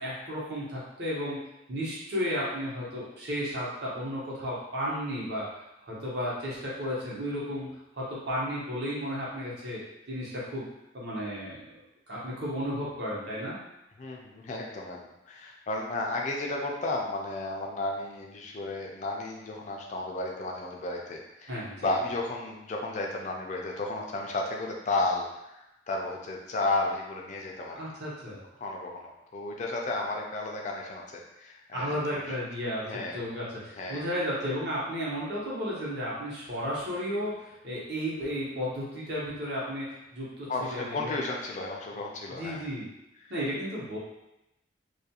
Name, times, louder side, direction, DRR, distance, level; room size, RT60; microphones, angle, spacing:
voice 1, 0.0-1.4 1.7-5.5 5.8-7.7 7.9-10.7 10.9-11.8 12.1-13.6 21.5-22.0 27.8-28.4 31.7-41.2 42.4-42.9 43.3-44.0, equal, 60° right, -7 dB, 0.8 m, -33 dB
voice 2, 14.0-27.8 28.6-32.3 32.9-33.2 33.7-34.0 40.5-42.6 43.2-43.3, left 2 dB, 40° left, -1 dB, 0.3 m, -33 dB
2.4 x 2.2 x 2.8 m, 0.90 s
head